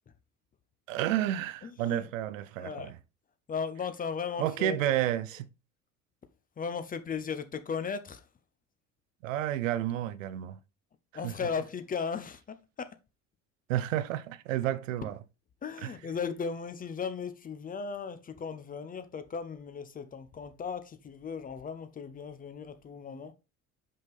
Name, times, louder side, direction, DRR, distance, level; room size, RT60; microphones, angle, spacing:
voice 1, 0.9-3.0 4.4-5.5 9.2-10.6 11.2-11.3 13.7-15.2 15.8-15.9, right 12 dB, 65° right, 0.6 m, -31 dB
voice 2, 1.6-2.1 2.6-2.9 3.5-4.9 6.6-8.2 11.1-13.0 15.6-23.3, left 6 dB, 20° left, 0.6 m, -36 dB
5.9 x 5.3 x 3.4 m
figure-of-eight pair, 60°, 42 cm